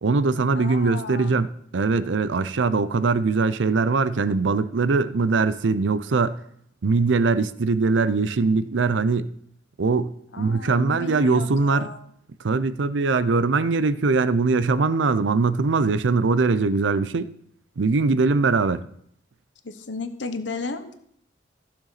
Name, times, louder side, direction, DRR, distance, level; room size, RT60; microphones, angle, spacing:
voice 1, 0.0-6.4 6.8-9.3 9.8-11.9 12.4-17.3 17.8-18.8, right 4 dB, 85° right, 0.5 m, -21 dB
voice 2, 0.5-1.4 10.3-12.1 19.6-21.0, left 3 dB, 80° left, 1.0 m, -34 dB
15.5 x 6.8 x 4.1 m
head